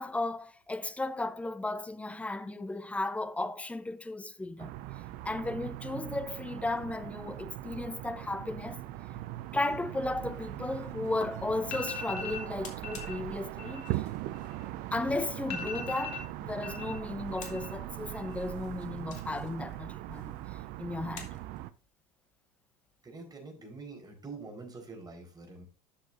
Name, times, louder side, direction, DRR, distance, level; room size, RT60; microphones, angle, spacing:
voice 1, 0.0-4.7 5.2-8.8 9.5-14.1 14.9-20.4 20.8-21.3, left 2 dB, 5° left, 0.7 m, -35 dB
sound 1, 4.6-21.7, right 15 dB, 50° right, 0.6 m, -40 dB
sound 2, 9.5-21.8, left 5 dB, 40° left, 2.6 m, -54 dB
sound 3, 11.6-12.5 12.8-13.1 13.5-14.9 15.2-15.3 15.5-16.9 17.2-17.8 18.1-18.7, left 6 dB, 55° left, 2.8 m, -40 dB
voice 2, 23.0-25.6, right 3 dB, 20° right, 4.4 m, -45 dB
12.5 x 6.9 x 2.6 m
figure-of-eight pair, 75°, 20 cm